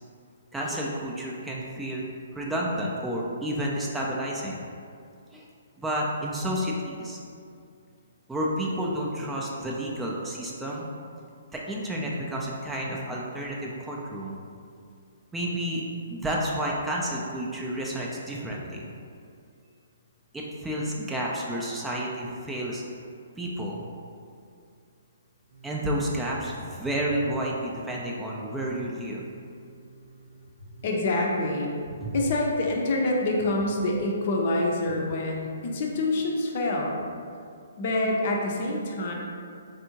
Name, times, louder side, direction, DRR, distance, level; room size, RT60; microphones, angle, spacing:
voice 1, 0.5-2.0 2.3-4.6 5.3-5.4 5.8-7.2 8.3-10.8 11.5-14.4 15.3-18.9 20.3-22.8 23.4-23.8 25.6-29.2 32.0-32.1, right 1 dB, 5° right, -4 dB, 0.3 m, -30 dB
sound 1, 25.5-34.9, equal, 65° right, 0.7 m, -48 dB
voice 2, 30.8-31.8 32.1-37.0 37.8-39.1, left 2 dB, 50° left, -1 dB, 0.5 m, -26 dB
3.4 x 2.6 x 2.8 m, 2.3 s
hypercardioid pair, 135°, 0 cm